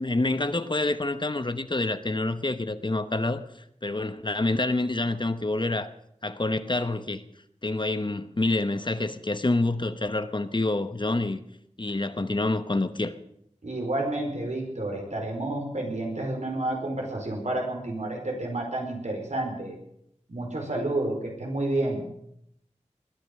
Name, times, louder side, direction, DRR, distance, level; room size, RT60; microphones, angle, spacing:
voice 1, 0.0-3.4 3.8-5.9 6.2-7.2 7.6-11.4 11.8-13.1, left 2 dB, 40° left, 1.0 m, -27 dB
voice 2, 13.6-19.8 20.3-22.0, right 2 dB, 75° right, 4.7 m, -30 dB
20.5 x 10.5 x 6.6 m
wide cardioid pair, 45°, 12 cm